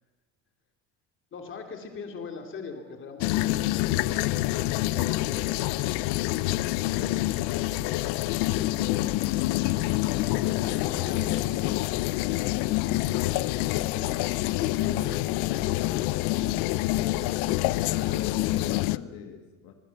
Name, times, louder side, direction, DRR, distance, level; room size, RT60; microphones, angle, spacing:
voice 1, 1.3-5.5 6.6-8.0 8.5-9.8 10.5-11.9 12.2-16.0, left 5 dB, 35° left, 4 dB, 3.1 m, -42 dB
sound 1, 3.2-19.0, left 17 dB, 85° left, 0.7 m, -27 dB
voice 2, 17.9-19.7, left 7 dB, 70° left, 5 dB, 1.9 m, -41 dB
26.0 x 16.0 x 7.2 m, 1.3 s
cardioid pair, 150°, 36 cm